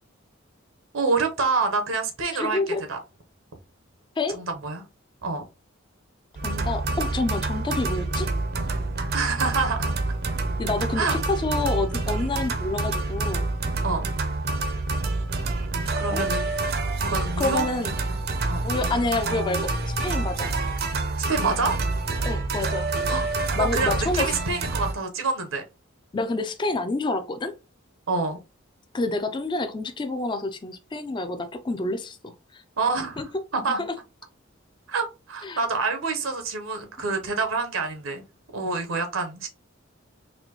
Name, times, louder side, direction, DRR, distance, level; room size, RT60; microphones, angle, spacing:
voice 1, 0.9-2.6 2.9-3.0 4.3-4.8 5.2-5.4 9.1-9.9 11.0-11.2 13.8-14.1 15.9-16.5 17.0-17.6 18.5-18.6 21.3-21.7 23.1-23.3 23.6-25.6 28.1-28.4 32.8-33.8 34.9-38.2 38.5-39.5, right 4 dB, 80° right, 0.8 m, -27 dB
voice 2, 2.4-2.8 4.2-4.4 6.4-8.3 10.6-13.5 16.1-16.3 17.4-17.9 18.6-20.5 22.2-22.9 23.6-24.3 26.1-27.5 28.9-32.6 33.2-33.3 35.4-35.6, left 2 dB, 25° left, 0.4 m, -28 dB
sound 1, 6.4-24.9, right 3 dB, 50° right, 0.6 m, -27 dB
4.2 x 2.6 x 2.9 m
head